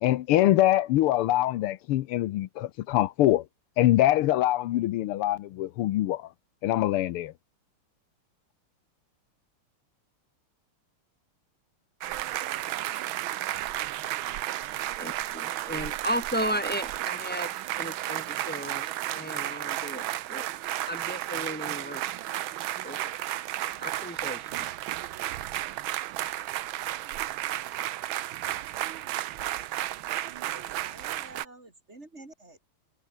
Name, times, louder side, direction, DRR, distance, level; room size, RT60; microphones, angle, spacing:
voice 1, 0.0-3.5 3.8-6.3 6.6-7.3, left 14 dB, 85° left, 1.7 m, -24 dB
sound 1, 12.0-31.4, right 14 dB, 70° right, 1.5 m, -33 dB
voice 2, 15.0-20.5 20.9-22.0 22.8-23.2 23.8-24.7, equal, 5° left, 2.5 m, -35 dB
voice 3, 30.1-32.6, right 2 dB, 30° right, 3.9 m, -50 dB
omnidirectional pair, 2.4 m